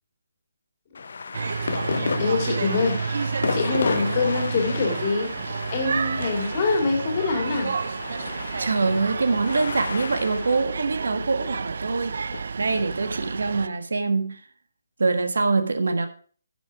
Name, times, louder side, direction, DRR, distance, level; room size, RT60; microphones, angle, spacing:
sound 1, 0.9-12.4, left 5 dB, 50° left, 0.8 m, -33 dB
sound 2, 1.3-13.7, right 5 dB, 45° right, 0.4 m, -30 dB
voice 1, 2.2-3.2 3.5-5.3 5.7-7.7, left 4 dB, 20° left, 2 dB, 2.5 m, -25 dB
voice 2, 8.6-12.2 12.5-14.4 15.0-16.1, right 3 dB, 75° right, 8 dB, 1.5 m, -24 dB
10.5 x 8.0 x 4.8 m, 0.43 s
hypercardioid pair, 180°, 0 cm